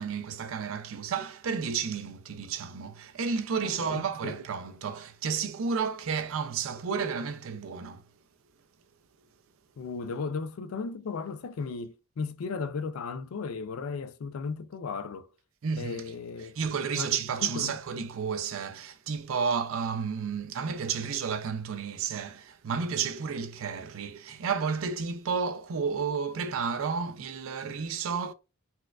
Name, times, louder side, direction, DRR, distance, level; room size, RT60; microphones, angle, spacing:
voice 1, 0.0-8.0 15.6-16.0 16.6-28.3, right 6 dB, 75° right, 0.4 m, -32 dB
voice 2, 3.6-4.4 9.8-15.3 15.8-16.5 16.9-17.1 17.4-17.8, left 5 dB, 90° left, 0.4 m, -35 dB
4.1 x 2.4 x 2.3 m
head